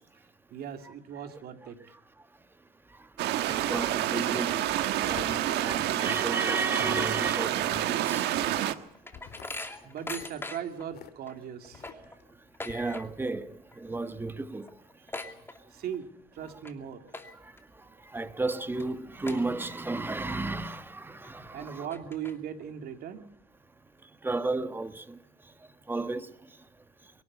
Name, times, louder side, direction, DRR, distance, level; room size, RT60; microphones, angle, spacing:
voice 1, 0.5-1.8 9.8-12.0 15.7-17.0 21.5-23.2, right 8 dB, 65° right, 2.7 m, -38 dB
sound 1, 3.2-8.7, right 13 dB, 80° right, 1.4 m, -28 dB
voice 2, 3.5-4.6 5.1-8.3 12.7-13.5 13.8-14.7 18.1-21.9 24.2-25.2 25.9-26.3, right 2 dB, 10° right, 1.4 m, -33 dB
sound 2, 4.5-6.3 6.6-7.1 7.5-7.9 8.2-8.8 9.1-11.1 11.7-12.2 12.7-12.8, left 10 dB, 65° left, 2.0 m, -48 dB
sound 3, 8.4-10.9 11.3-11.4 11.6-13.4 13.6-14.0 14.3-14.4 14.6-16.0 16.5-16.7 17.1-17.6 18.1-18.2 18.8-18.9 19.3-20.0 20.4-20.5 21.2-21.3 21.7-22.6, left 2 dB, 15° left, 2.5 m, -41 dB
23.5 x 11.5 x 9.8 m
cardioid pair, 110°, 17 cm